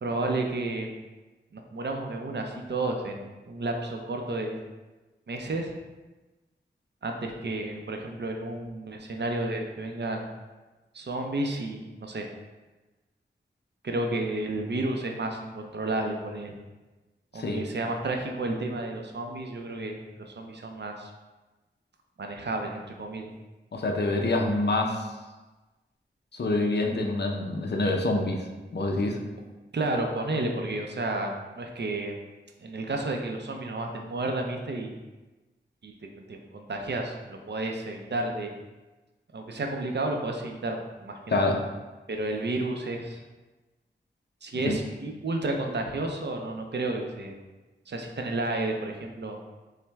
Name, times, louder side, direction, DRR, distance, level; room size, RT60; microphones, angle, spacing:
voice 1, 0.0-1.0 1.5-4.6 5.3-5.7 7.0-10.2 10.9-12.3 13.8-16.5 17.3-21.1 22.2-23.3 29.7-32.2 32.6-35.0 35.8-35.9 36.3-38.6 39.3-41.5 42.1-43.2 44.4-47.4 47.9-49.4, right 2 dB, 60° right, 2 dB, 0.6 m, -31 dB
voice 2, 17.3-17.7 23.7-25.1 26.3-28.4 28.7-29.2 41.3-41.6 44.5-44.7, left 2 dB, 60° left, 2 dB, 0.6 m, -26 dB
5.6 x 2.1 x 3.4 m, 1.2 s
wide cardioid pair, 60°, 20 cm